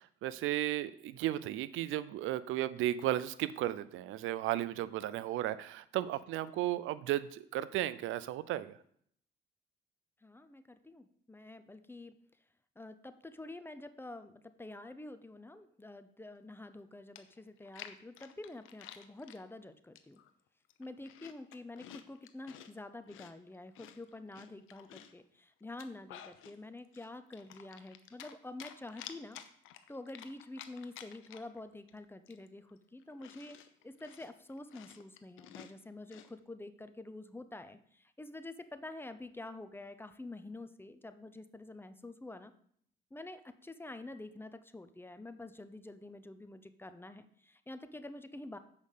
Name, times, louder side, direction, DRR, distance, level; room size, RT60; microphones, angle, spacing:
voice 1, 0.0-8.8, right 13 dB, 85° right, 16 dB, 0.5 m, -34 dB
voice 2, 10.2-12.1 12.8-20.2 20.8-29.4 29.9-33.6 33.8-42.5 43.1-48.6, left 2 dB, 10° left, 10 dB, 0.7 m, -48 dB
Chewing mastication, 16.8-16.9 17.2-19.4 19.9-20.3 20.6-22.7 23.1-25.2 25.6-26.6 26.9-28.3 28.6-31.6 31.9-32.0 32.3-36.3, left 10 dB, 90° left, 0.7 m, -52 dB
7.3 x 5.3 x 6.6 m, 0.64 s
cardioid pair, 90°, 20 cm